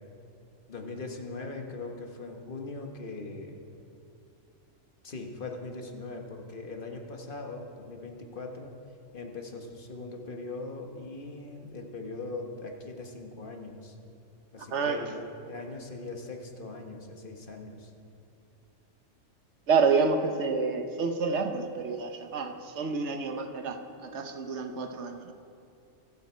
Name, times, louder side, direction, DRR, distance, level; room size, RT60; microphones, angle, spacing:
voice 1, 0.7-3.6 5.0-8.7 9.1-14.0 14.5-17.9, left 3 dB, 45° left, 3 dB, 1.4 m, -40 dB
voice 2, 14.7-15.0 19.7-25.3, right 5 dB, 70° right, 6 dB, 1.3 m, -28 dB
24.5 x 8.3 x 4.4 m, 2.7 s
omnidirectional pair, 1.3 m